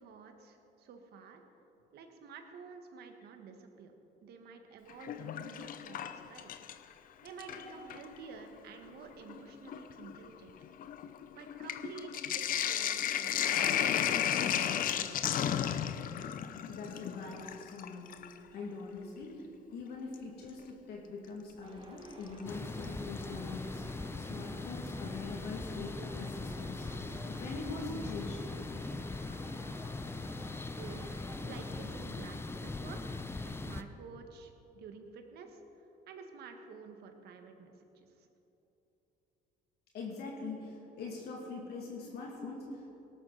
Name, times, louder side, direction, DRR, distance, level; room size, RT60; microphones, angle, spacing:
voice 1, 0.0-1.4 1.9-3.9 4.2-6.5 7.2-10.6 11.4-15.2 30.8-31.1 31.4-33.2 33.5-35.6 36.1-37.7 38.2-38.3, right 5 dB, 70° right, 5 dB, 1.6 m, -50 dB
Sink (filling or washing), 4.9-6.9 7.3-8.1 8.9-9.0 9.3-18.4 20.1-20.2 22.0-22.5 22.8-22.9 23.2-23.3, left 9 dB, 55° left, 0.7 m, -34 dB
voice 2, 16.7-18.1 18.5-19.4 19.7-23.8 24.2-26.9 27.2-28.5 39.9-42.9, left 3 dB, 70° left, -2 dB, 2.3 m, -43 dB
Subway metro underground, 21.6-31.9, right 2 dB, 30° right, 2.5 m, -55 dB
sound 1, 22.4-33.8, left 3 dB, 15° left, 0.6 m, -40 dB
18.0 x 12.5 x 4.1 m, 3.0 s
cardioid pair, 110°, 17 cm